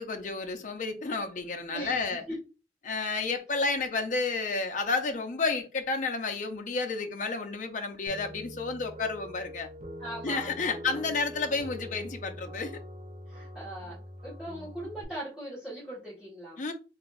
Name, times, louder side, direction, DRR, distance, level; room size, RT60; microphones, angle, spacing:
voice 1, 0.0-2.2 2.8-9.7 10.2-12.8 14.5-14.7 16.6-16.7, left 4 dB, 45° left, 0.5 m, -31 dB
voice 2, 1.7-2.4 10.0-11.1 13.3-16.6, right 1 dB, 5° right, 1.5 m, -40 dB
sound 1, 8.1-15.0, equal, 40° right, 0.5 m, -44 dB
3.3 x 2.6 x 2.4 m
head